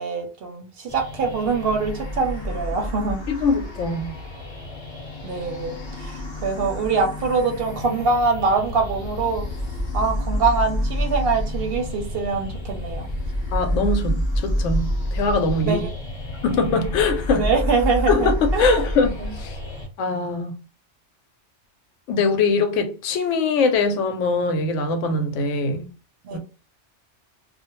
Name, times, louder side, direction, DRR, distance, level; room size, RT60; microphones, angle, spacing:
voice 1, 0.0-3.2 5.2-9.4 9.9-13.1 15.6-15.9 17.3-18.8 19.2-19.3 26.2-26.4, right 4 dB, 60° right, 0.7 m, -24 dB
sound 1, 0.9-19.9, left 1 dB, 25° left, 0.8 m, -28 dB
voice 2, 3.3-4.2 13.5-15.8 16.4-17.4 18.1-19.1 19.4-19.6 20.0-20.6 22.1-25.9 26.3-26.4, left 3 dB, 85° left, 0.9 m, -22 dB
2.3 x 2.1 x 2.9 m
omnidirectional pair, 1.2 m